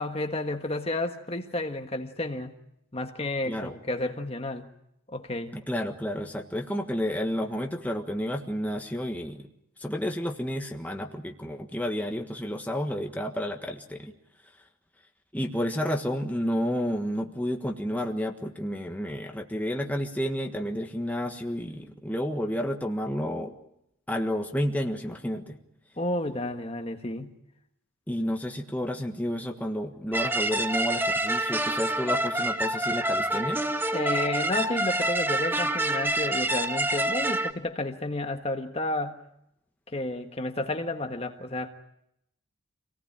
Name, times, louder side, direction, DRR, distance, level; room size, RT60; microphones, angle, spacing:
voice 1, 0.0-2.6 2.9-4.7 5.1-5.6 26.0-27.4 33.9-39.2 39.9-41.7, left 2 dB, 30° left, 5 dB, 1.6 m, -31 dB
voice 2, 5.5-9.5 9.8-14.1 15.3-23.5 24.1-25.6 28.1-33.6, equal, 5° left, 2 dB, 1.5 m, -31 dB
sound 1, 30.1-37.5, right 1 dB, 10° right, 1.0 m, -27 dB
27.0 x 18.5 x 8.8 m, 0.78 s
head